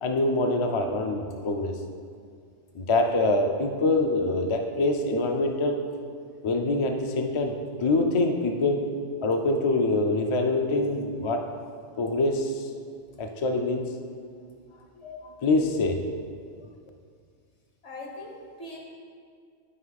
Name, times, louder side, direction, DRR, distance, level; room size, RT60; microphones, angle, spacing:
voice 1, 0.0-1.8 2.7-5.8 6.4-8.9 9.2-11.5 12.0-12.7 13.2-13.9 15.0-16.0, left 2 dB, 50° left, 4 dB, 0.3 m, -25 dB
voice 2, 17.8-18.8, left 2 dB, 70° left, -1 dB, 1.6 m, -40 dB
9.5 x 4.7 x 4.1 m, 2.1 s
omnidirectional pair, 1.2 m